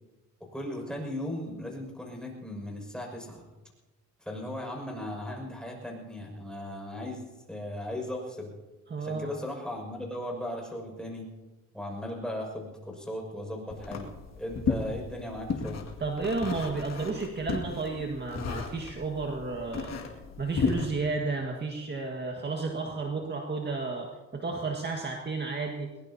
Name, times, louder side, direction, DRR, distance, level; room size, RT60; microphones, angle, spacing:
voice 1, 0.4-3.5 4.2-8.5 9.0-11.3 11.7-15.9, left 1 dB, 5° left, 0 dB, 6.2 m, -37 dB
voice 2, 8.9-9.4 16.0-20.0 20.4-25.9, right 3 dB, 35° right, 1 dB, 1.8 m, -32 dB
sound 1, 13.7-20.9, left 5 dB, 60° left, 2.2 m, -34 dB
21.5 x 20.0 x 2.9 m, 1.2 s
cardioid pair, 90°, 30 cm